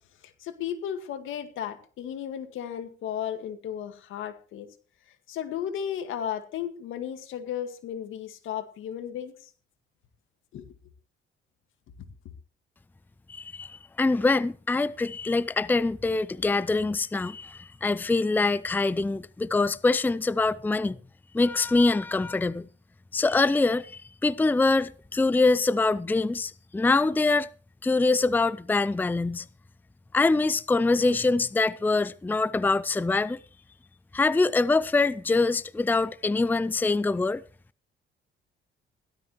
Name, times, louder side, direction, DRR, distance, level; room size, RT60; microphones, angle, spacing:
voice 1, 0.2-4.7 5.3-9.3 10.5-10.7, left 9 dB, 85° left, 2.0 m, -34 dB
voice 2, 13.3-21.0 21.3-22.7 23.1-27.5 27.8-29.5 30.1-33.4 34.1-37.4, left 3 dB, 10° left, 0.5 m, -24 dB
16.5 x 12.5 x 3.2 m
cardioid pair, 90°, 20 cm